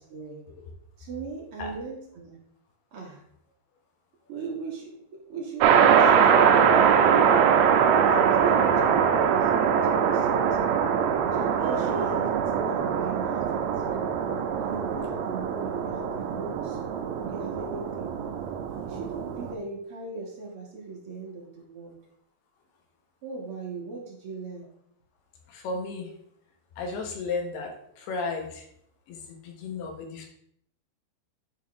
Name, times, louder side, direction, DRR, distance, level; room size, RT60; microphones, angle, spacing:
voice 1, 0.1-0.4 1.0-2.4 2.9-3.2 4.3-4.9 5.3-7.3 8.1-10.8 11.3-14.1 14.6-16.8 17.2-18.1 18.8-21.9 23.2-24.7, right 3 dB, 55° right, -3 dB, 1.6 m, -38 dB
sound 1, 5.6-19.5, right 7 dB, 80° right, 2.2 m, -22 dB
voice 2, 25.5-26.1 26.8-28.6 29.1-30.3, left 3 dB, 75° left, 3 dB, 3.1 m, -34 dB
11.0 x 4.5 x 3.5 m, 0.69 s
omnidirectional pair, 4.7 m